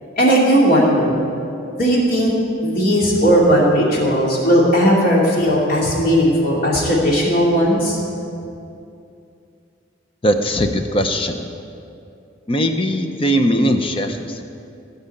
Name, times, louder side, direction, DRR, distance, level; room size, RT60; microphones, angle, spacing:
voice 1, 0.2-1.2 1.8-2.3 2.6-8.0, equal, 50° left, -4 dB, 2.7 m, -16 dB
voice 2, 10.2-11.4 12.5-14.4, equal, 30° left, 6 dB, 0.7 m, -19 dB
16.5 x 5.6 x 8.5 m, 2.6 s
head